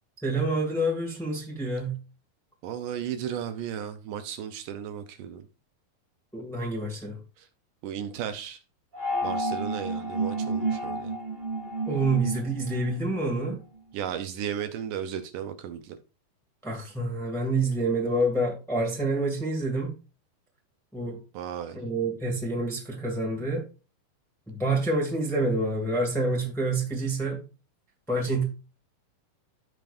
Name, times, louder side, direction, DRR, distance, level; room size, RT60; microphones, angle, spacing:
voice 1, 0.2-2.0 6.3-7.2 11.9-13.6 16.6-19.9 20.9-21.2 21.7-23.6 24.5-27.4 28.1-28.4, right 2 dB, ahead, 0.7 m, -27 dB
voice 2, 2.6-5.5 7.4-7.5 7.8-8.6 9.2-11.1 13.9-16.0 21.3-21.8, right 9 dB, 75° right, 2.0 m, -35 dB
sound 1, 8.9-13.5, right 2 dB, 20° right, 1.7 m, -31 dB
15.5 x 5.2 x 2.6 m
omnidirectional pair, 4.4 m